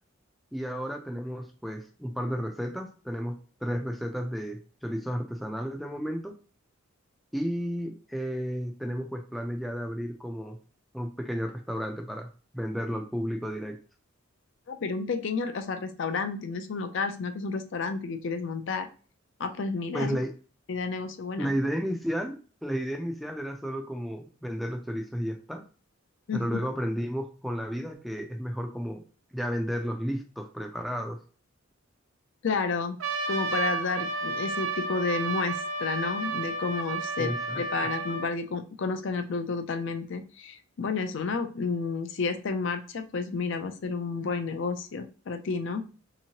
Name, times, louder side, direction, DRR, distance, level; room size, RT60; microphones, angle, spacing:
voice 1, 0.5-3.3 3.6-6.4 7.3-10.6 10.9-12.3 12.5-13.8 19.9-20.3 21.4-25.6 26.3-29.0 29.3-31.2 37.2-37.6, equal, ahead, 3 dB, 0.4 m, -32 dB
voice 2, 14.7-18.9 19.4-20.2 20.7-21.5 26.3-26.4 32.4-33.0 33.3-45.8, left 4 dB, 60° left, 8 dB, 0.4 m, -31 dB
Trumpet, 33.0-38.3, right 3 dB, 90° right, 0.5 m, -32 dB
3.5 x 2.9 x 2.8 m, 0.36 s
head